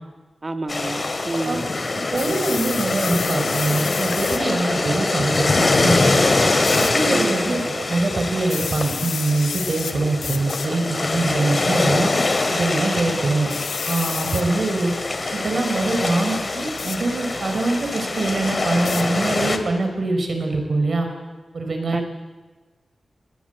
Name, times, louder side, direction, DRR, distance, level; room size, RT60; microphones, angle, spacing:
voice 1, 0.4-1.7 7.1-7.5 14.8-14.9 21.9-22.1, right 2 dB, 25° right, 8 dB, 1.5 m, -29 dB
sound 1, 0.7-19.6, left 2 dB, 35° left, 2.3 m, -24 dB
voice 2, 2.1-6.2 6.7-12.1 12.5-13.5 13.9-14.9 15.3-21.1 21.5-22.0, right 2 dB, 50° right, 5 dB, 4.8 m, -23 dB
sound 2, 2.2-4.4 6.6-6.9 8.4-9.9 10.2-10.7 11.5-11.8 13.5-14.4 16.8-17.0 18.9-19.0, left 6 dB, 90° left, 2.0 m, -30 dB
28.0 x 21.5 x 8.1 m, 1.3 s
wide cardioid pair, 120°, 0 cm